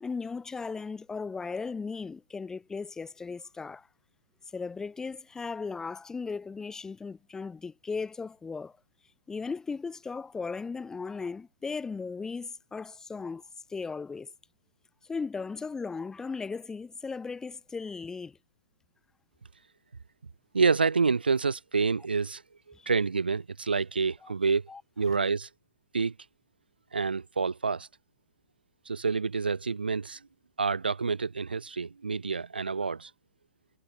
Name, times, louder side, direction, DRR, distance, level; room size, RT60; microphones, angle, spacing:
voice 1, 0.0-3.9 4.5-8.8 9.3-13.4 13.7-14.3 15.0-18.4 22.7-22.9 24.2-24.3 24.7-24.8 25.1-25.2, left 4 dB, 10° left, 1.3 m, -37 dB
voice 2, 20.5-22.4 22.9-24.7 25.0-25.5 25.9-26.1 26.9-27.9 28.9-30.2 30.6-33.1, right 4 dB, 80° right, 1.7 m, -28 dB
figure-of-eight pair, 115°, 5 cm